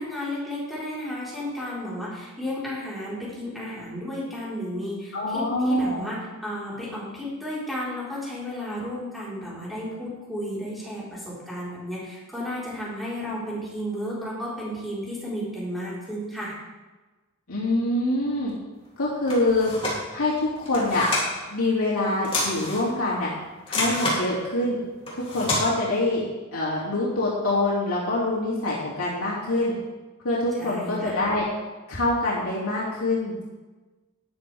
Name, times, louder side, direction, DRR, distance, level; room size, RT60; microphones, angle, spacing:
voice 1, 0.0-16.6 30.6-31.2, equal, ahead, -8 dB, 4.3 m, -33 dB
voice 2, 5.1-6.1 17.5-18.5 19.0-19.7 20.1-21.0 21.5-23.3 23.7-24.8 25.3-26.2 26.5-29.7 30.2-31.4 31.9-33.4, left 2 dB, 75° left, -7 dB, 2.7 m, -25 dB
sound 1, 19.3-20.0 20.6-21.3 22.2-22.9 23.7-24.2 25.1-25.6, left 1 dB, 25° left, 3.0 m, -27 dB
13.0 x 10.5 x 3.5 m, 1.2 s
head